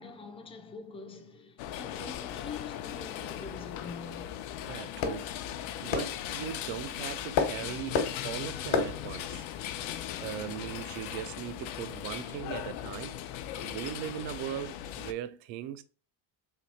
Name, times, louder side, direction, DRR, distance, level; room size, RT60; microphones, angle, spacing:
voice 1, 0.0-4.3, left 4 dB, 15° left, 0.4 m, -45 dB
sound 1, 1.6-15.1, left 11 dB, 80° left, 0.6 m, -39 dB
sound 2, 2.5-11.3, left 5 dB, 65° left, 1.0 m, -36 dB
voice 2, 4.7-5.3 5.8-9.5 10.2-13.2 13.6-15.8, right 11 dB, 70° right, 0.5 m, -39 dB
3.4 x 2.7 x 4.1 m
cardioid pair, 160°, 45 cm